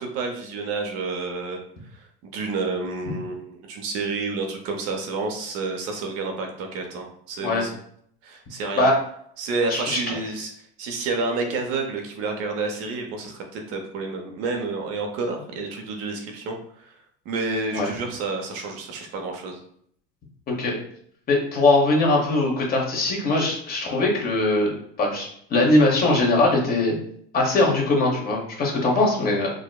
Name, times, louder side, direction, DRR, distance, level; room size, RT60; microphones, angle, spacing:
voice 1, 0.0-1.6 1.9-7.7 8.2-8.9 9.4-10.5 10.8-17.0 17.3-19.6, right 3 dB, 55° right, 3 dB, 0.7 m, -29 dB
voice 2, 9.7-10.2 17.7-17.9 20.5-20.8 21.3-24.7 25.0-27.0 27.3-29.5, left 2 dB, 30° left, -1 dB, 1.1 m, -21 dB
4.8 x 2.1 x 2.3 m, 0.65 s
supercardioid pair, 120°, 29 cm